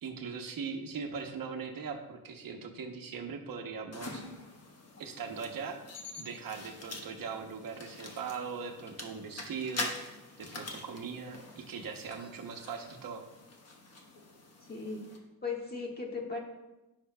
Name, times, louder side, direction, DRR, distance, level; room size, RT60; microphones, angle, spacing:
voice 1, 0.0-4.2 5.0-5.8 6.2-13.2, right 5 dB, 60° right, 3 dB, 0.9 m, -40 dB
sound 1, 3.9-15.2, left 3 dB, 40° left, 1.1 m, -45 dB
voice 2, 14.7-16.4, left 4 dB, 25° left, -1 dB, 1.4 m, -38 dB
15.0 x 5.8 x 2.2 m, 1.0 s
wide cardioid pair, 175°, 38 cm